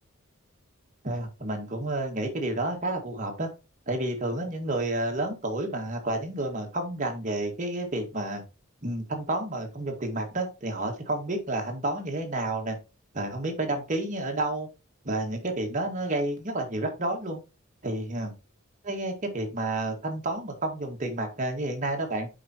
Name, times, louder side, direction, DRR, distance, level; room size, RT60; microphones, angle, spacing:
voice 1, 1.0-3.5 3.9-8.4 8.8-12.8 13.1-14.7 15.0-17.4 17.8-18.3 18.8-22.3, right 2 dB, 35° right, 3 dB, 1.8 m, -30 dB
8.3 x 5.3 x 2.9 m, 0.30 s
head